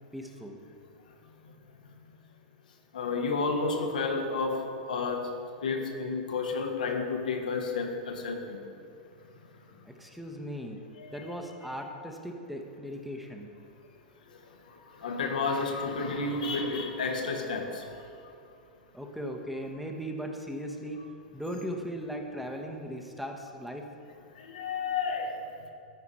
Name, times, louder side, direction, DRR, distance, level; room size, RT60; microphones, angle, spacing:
voice 1, 0.1-0.6 9.8-10.8 11.1-13.5 18.9-21.0 21.3-23.8, equal, ahead, 2 dB, 0.9 m, -38 dB
voice 2, 2.9-5.3 5.6-8.6 11.0-11.3 15.0-17.7 24.5-25.3, left 4 dB, 80° left, 3 dB, 1.1 m, -31 dB
13.0 x 4.8 x 4.2 m, 2.5 s
hypercardioid pair, 110°, 4 cm